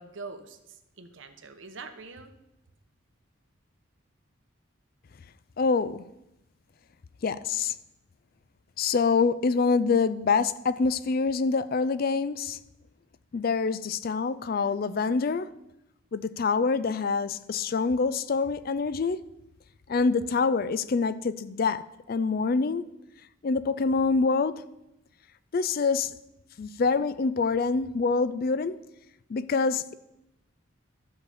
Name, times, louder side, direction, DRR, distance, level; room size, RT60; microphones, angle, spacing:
voice 1, 0.0-2.3, right 4 dB, 65° right, 1.0 m, -44 dB
voice 2, 5.6-6.0 7.2-7.7 8.8-12.6 13.3-15.5 16.1-19.2 19.9-21.8 22.1-22.8 23.4-24.6 25.5-26.1 26.6-28.8 29.3-29.9, left 4 dB, 45° left, 0.4 m, -26 dB
12.5 x 4.9 x 6.9 m
head